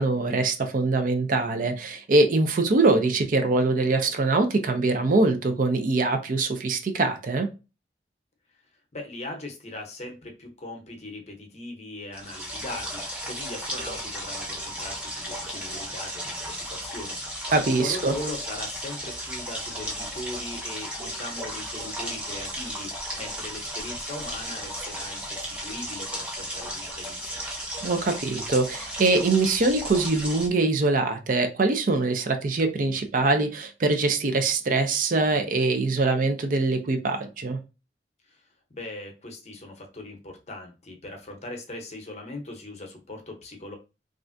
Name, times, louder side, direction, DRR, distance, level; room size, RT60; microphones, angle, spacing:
voice 1, 0.0-7.5 17.5-18.1 27.8-37.6, right 3 dB, 50° right, 0.4 m, -23 dB
voice 2, 8.9-22.9 23.2-27.3 38.3-38.4 38.7-43.8, left 2 dB, 40° left, 0.7 m, -39 dB
sound 1, 12.1-30.5, equal, 5° right, 0.6 m, -35 dB
3.2 x 2.4 x 2.5 m
head